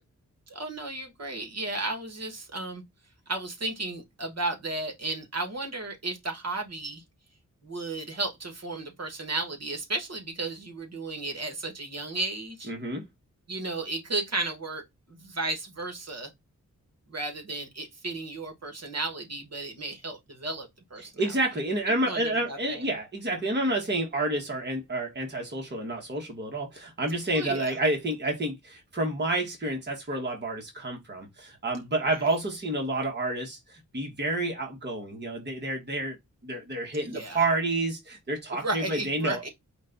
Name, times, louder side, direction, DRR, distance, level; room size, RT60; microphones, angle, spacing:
voice 1, 0.5-2.8 3.3-7.0 7.6-12.7 13.5-14.8 15.1-16.3 17.1-21.3 22.1-22.8 27.3-27.8 37.0-37.4 38.6-39.5, right 2 dB, 50° right, 1.4 m, -34 dB
voice 2, 12.7-13.0 21.2-36.2 36.4-39.5, right 2 dB, 35° right, 1.2 m, -29 dB
5.2 x 2.2 x 3.8 m
wide cardioid pair, 115°, 32 cm